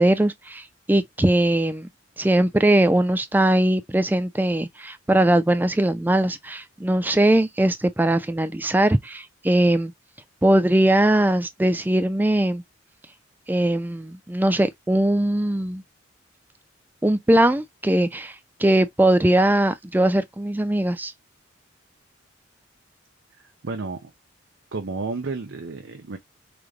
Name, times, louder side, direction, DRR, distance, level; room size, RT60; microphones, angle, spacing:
voice 1, 0.0-1.9 2.2-9.9 10.4-12.6 13.5-15.8 17.0-21.1, right 1 dB, 10° right, 0.3 m, -20 dB
voice 2, 23.4-24.1 24.7-26.2, right 3 dB, 65° right, 0.6 m, -32 dB
5.0 x 3.0 x 2.4 m
head